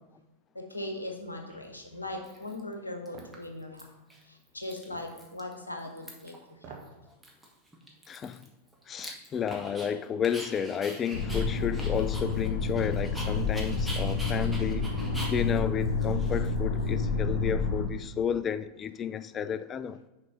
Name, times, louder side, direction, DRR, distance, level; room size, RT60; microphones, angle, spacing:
voice 1, 0.5-3.8 4.3-6.8, left 1 dB, 80° left, 1.2 m, -39 dB
Dog, 1.5-1.6 2.2-2.7 3.1-3.8 4.1-4.2 4.5-5.5 5.8-6.4 6.8-6.9 7.2-9.9 10.2-16.9, right 1 dB, 5° right, 1.4 m, -44 dB
sound 1, 3.1-3.4 4.9-5.1 6.5-7.0 7.4-7.5, right 5 dB, 40° right, 1.5 m, -47 dB
voice 2, 8.1-8.5 8.9-14.9 15.3-20.0, left 8 dB, 25° left, 0.3 m, -32 dB
sound 2, 11.1-17.8, left 4 dB, 50° left, 1.5 m, -29 dB
6.7 x 5.3 x 5.6 m
figure-of-eight pair, 90°, 0 cm